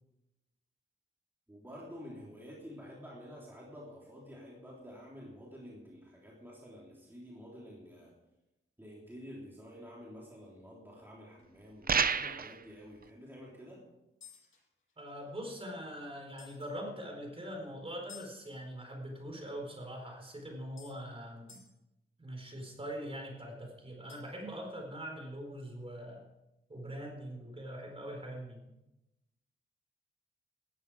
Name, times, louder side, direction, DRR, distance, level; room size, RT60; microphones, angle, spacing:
voice 1, 1.5-8.1 8.8-13.8, equal, 10° right, -4 dB, 3.5 m, -49 dB
sound 1, 10.3-10.5 11.0-11.1 11.4-11.5 12.0-12.1 14.2-15.5 16.4-16.7 18.1-18.3 20.0-20.1 20.8-21.0 21.5-21.7 24.1-24.4, left 8 dB, 70° left, 7.4 m, -55 dB
sound 2, 11.9-12.6, right 6 dB, 45° right, 0.7 m, -29 dB
voice 2, 15.0-21.6 22.2-26.3 26.7-28.8, equal, 25° right, 2 dB, 4.5 m, -43 dB
19.5 x 14.5 x 4.9 m, 0.93 s
wide cardioid pair, 155°, 21 cm